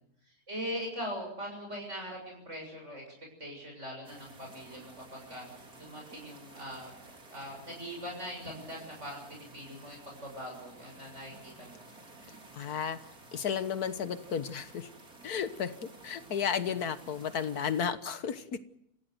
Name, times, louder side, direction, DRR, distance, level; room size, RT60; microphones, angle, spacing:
voice 1, 0.2-3.1 3.4-6.9 7.3-11.8, equal, 50° right, 0 dB, 7.3 m, -41 dB
sound 1, 4.0-17.9, right 2 dB, 75° right, 4.2 m, -53 dB
voice 2, 12.5-13.0 13.3-14.9 15.2-18.6, left 7 dB, 80° left, 11 dB, 1.8 m, -33 dB
29.0 x 16.0 x 7.9 m, 0.74 s
omnidirectional pair, 1.6 m